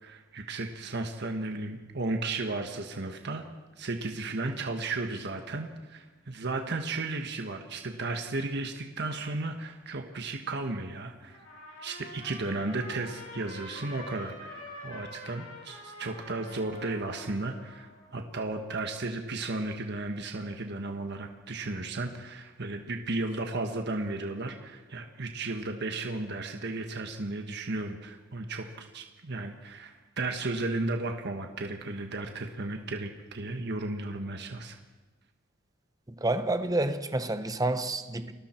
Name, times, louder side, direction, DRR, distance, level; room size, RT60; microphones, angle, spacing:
voice 1, 0.0-3.4 3.8-11.4 11.8-34.8, right 2 dB, 55° right, 4 dB, 1.4 m, -34 dB
Trumpet, 11.3-18.1, left 1 dB, 75° left, 7.1 m, -46 dB
voice 2, 36.2-38.3, right 2 dB, 20° right, 10 dB, 1.0 m, -29 dB
30.0 x 21.5 x 4.5 m, 1.3 s
head